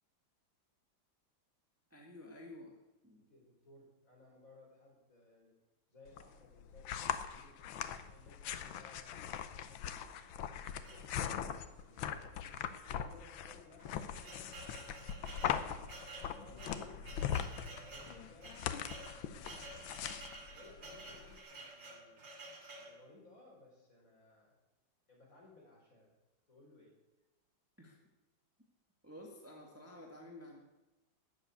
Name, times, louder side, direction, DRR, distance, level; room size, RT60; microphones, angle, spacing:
voice 1, 1.9-2.8 3.0-3.3 27.8-28.0 29.0-30.6, left 1 dB, 10° right, 0 dB, 1.7 m, -52 dB
voice 2, 3.3-5.5 5.9-7.6 7.9-11.5 11.8-12.6 12.9-15.5 16.2-19.9 20.5-22.3 22.7-24.6 25.1-26.1 26.5-27.0, left 2 dB, 45° left, -2 dB, 4.9 m, -61 dB
sound 1, 6.1-21.4, left 9 dB, 85° left, 1.6 m, -41 dB
sound 2, 10.8-11.7 12.4-12.6 12.8-12.9 13.6-23.0, right 2 dB, 70° right, 3.3 m, -52 dB
13.0 x 7.7 x 9.6 m, 1.0 s
omnidirectional pair, 2.1 m